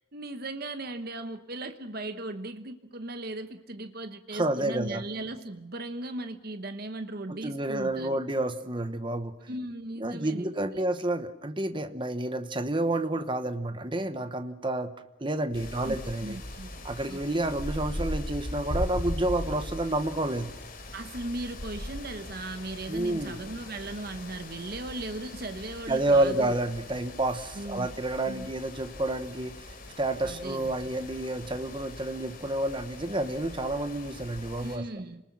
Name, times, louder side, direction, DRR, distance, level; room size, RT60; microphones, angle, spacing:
voice 1, 0.1-8.2 9.5-10.8 15.8-17.2 20.9-26.6 27.5-27.9 28.2-28.5 30.2-30.7 34.6-35.2, right 2 dB, 45° right, 8 dB, 1.1 m, -37 dB
voice 2, 4.3-5.0 7.3-9.4 10.0-14.9 15.2-16.4 16.8-20.5 22.9-23.4 25.9-29.7 30.0-34.8, right 1 dB, 25° right, 9 dB, 1.0 m, -29 dB
sound 1, 15.5-34.8, left 1 dB, 45° left, 3.7 m, -40 dB
28.5 x 20.0 x 6.0 m, 0.97 s
head